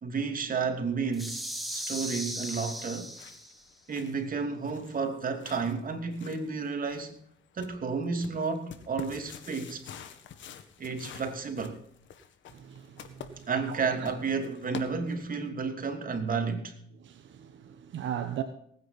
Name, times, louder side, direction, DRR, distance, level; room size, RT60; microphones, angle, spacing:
voice 1, 0.0-3.1 3.9-7.1 7.5-9.8 10.8-11.8 13.5-16.8, right 5 dB, 45° right, 3.0 m, -32 dB
sound 1, 1.1-3.7, equal, ahead, 2.4 m, -37 dB
sound 2, 1.3-15.5, left 8 dB, 70° left, 1.8 m, -49 dB
voice 2, 12.5-14.1 17.0-18.4, right 10 dB, 70° right, 1.3 m, -38 dB
19.5 x 9.5 x 4.3 m
cardioid pair, 90°, 20 cm